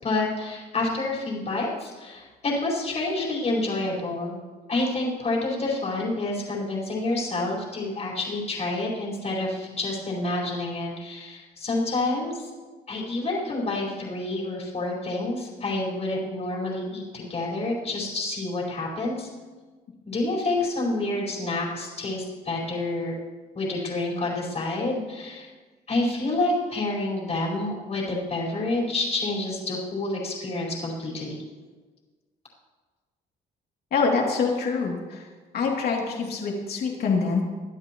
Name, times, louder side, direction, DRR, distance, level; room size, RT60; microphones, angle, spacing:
voice 1, 0.0-4.4 4.7-12.5 12.9-19.3 20.1-23.1 23.5-25.5 25.9-31.4, left 2 dB, 40° left, -4 dB, 4.9 m, -28 dB
voice 2, 33.9-35.3 35.5-37.4, left 4 dB, 65° left, -1 dB, 2.9 m, -25 dB
22.5 x 12.0 x 3.1 m, 1.3 s
cardioid pair, 90°, 17 cm